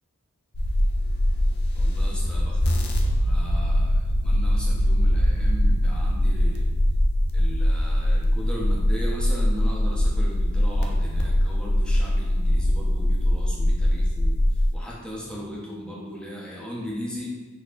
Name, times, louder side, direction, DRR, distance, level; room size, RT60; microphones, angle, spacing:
sound 1, 0.5-14.8, left 1 dB, 50° left, 0.4 m, -22 dB
voice 1, 1.7-6.7 7.3-17.4, equal, 5° left, -4 dB, 0.6 m, -37 dB
sound 2, 2.9-7.8, right 3 dB, 90° right, 0.3 m, -31 dB
4.2 x 2.7 x 2.5 m, 1.3 s
head